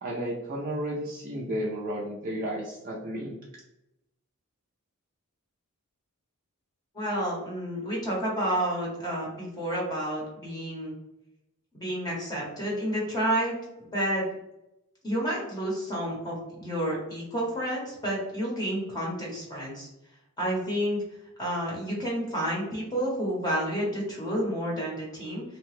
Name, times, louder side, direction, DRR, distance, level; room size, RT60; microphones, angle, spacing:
voice 1, 0.0-3.4, right 1 dB, 40° right, -4 dB, 0.4 m, -33 dB
voice 2, 6.9-10.9 11.7-14.2 15.0-19.9 20.4-21.0 21.4-25.4, equal, 20° left, -4 dB, 0.8 m, -30 dB
2.8 x 2.1 x 3.1 m, 0.88 s
head